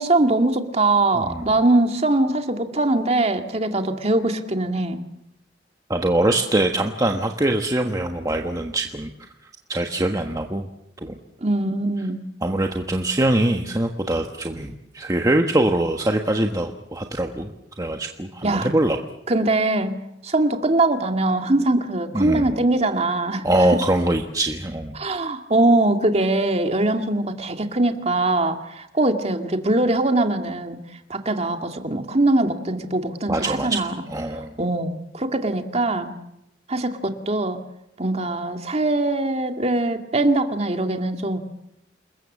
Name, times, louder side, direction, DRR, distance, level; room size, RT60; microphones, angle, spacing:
voice 1, 0.0-5.0 11.4-12.2 18.4-18.7 19.3-19.9 20.2-23.4 23.7-23.8 24.9-30.8 31.1-33.9 34.6-36.1 36.7-37.6 38.0-41.4, right 2 dB, 35° right, 5 dB, 2.1 m, -22 dB
voice 2, 1.1-1.5 5.9-9.1 9.7-10.7 11.0-11.2 12.4-17.5 17.8-19.0 22.1-22.5 23.4-24.9 33.3-34.5, right 1 dB, 20° right, 3 dB, 1.3 m, -23 dB
28.5 x 21.5 x 7.4 m, 0.84 s
head